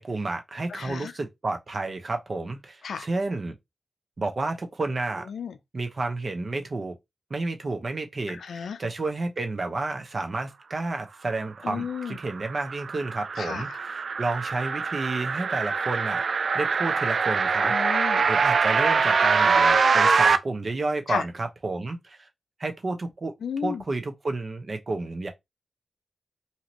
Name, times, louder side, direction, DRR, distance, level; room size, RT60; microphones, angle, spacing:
voice 1, 0.0-3.5 4.2-5.3 5.7-6.9 7.3-17.7 18.3-22.3 22.6-23.4 23.6-25.3, right 3 dB, 55° right, 0.8 m, -31 dB
voice 2, 0.7-1.1 2.8-3.1 5.3-5.6 8.3-8.8 11.6-12.2 13.4-13.8 17.6-18.3 21.1-21.3 23.4-23.8, left 6 dB, 85° left, 0.4 m, -33 dB
sound 1, 12.0-20.4, right 5 dB, 70° right, 0.3 m, -23 dB
2.8 x 2.6 x 3.0 m
cardioid pair, 45°, 0 cm